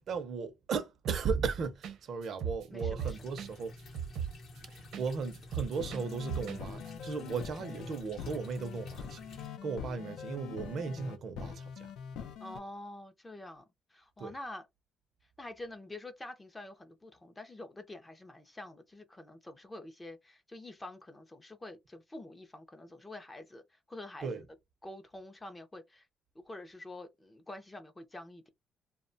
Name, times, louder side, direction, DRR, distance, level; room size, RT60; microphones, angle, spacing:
voice 1, 0.0-3.8 4.6-11.9 14.2-14.3 24.2-24.4, right 5 dB, 50° right, 0.5 m, -36 dB
sound 1, 1.0-1.5 1.8-2.0 2.2-5.1 5.3-6.6 6.9-7.0, right 8 dB, 80° right, 0.8 m, -37 dB
voice 2, 2.7-3.2 12.4-13.6 13.9-14.7 15.4-23.6 23.9-24.4 24.8-26.1 26.4-28.5, left 1 dB, 15° left, 0.4 m, -47 dB
sound 2, 3.0-9.5, left 2 dB, 50° left, 0.7 m, -51 dB
sound 3, 5.7-12.6, left 7 dB, 85° left, 0.5 m, -44 dB
2.8 x 2.1 x 2.6 m
cardioid pair, 150°, 0 cm